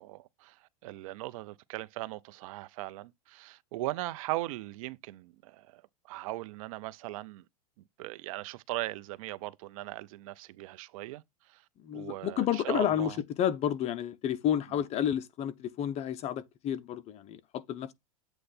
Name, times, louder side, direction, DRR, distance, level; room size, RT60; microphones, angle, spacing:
voice 1, 0.0-7.4 8.0-11.6 11.9-13.2, right 18 dB, 65° right, 0.7 m, -39 dB
voice 2, 11.8-17.9, left 10 dB, 35° left, 0.8 m, -31 dB
8.0 x 3.2 x 4.3 m
supercardioid pair, 120°, 19 cm